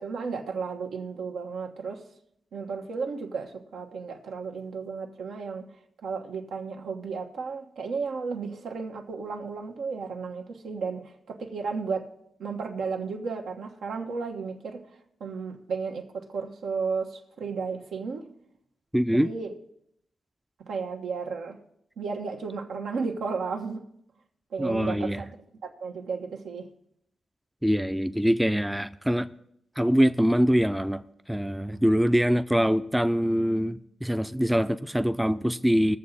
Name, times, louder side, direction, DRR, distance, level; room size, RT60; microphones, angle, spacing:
voice 1, 0.0-2.0 2.5-5.7 6.0-12.1 12.4-14.8 15.2-18.3 19.1-19.5 20.6-21.6 22.0-23.9 24.5-25.3 25.6-26.7, right 5 dB, 85° right, 1.3 m, -33 dB
voice 2, 18.9-19.3 24.6-25.3 27.6-29.3 29.8-31.0 31.3-36.0, equal, 5° right, 0.4 m, -24 dB
20.5 x 6.9 x 4.2 m
cardioid pair, 80°, 0 cm